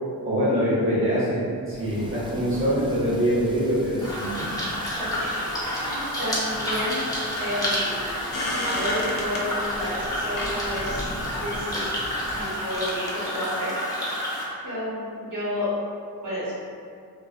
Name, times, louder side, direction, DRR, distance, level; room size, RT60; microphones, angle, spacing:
voice 1, 0.2-4.3, equal, 35° right, -8 dB, 0.9 m, -24 dB
Thunder / Rain, 1.7-12.7, right 1 dB, 15° right, 0.3 m, -40 dB
sound 1, 4.0-14.4, equal, 10° left, 0.7 m, -29 dB
voice 2, 4.9-7.0 7.4-8.1 8.6-12.0 12.3-15.7 16.2-16.5, left 1 dB, 60° right, -9 dB, 1.1 m, -31 dB
sound 2, 8.3-9.5 10.4-10.6 11.3-11.7 12.7-13.1, left 2 dB, 60° left, 0.5 m, -32 dB
2.6 x 2.4 x 2.4 m, 2.3 s
cardioid pair, 85°, 38 cm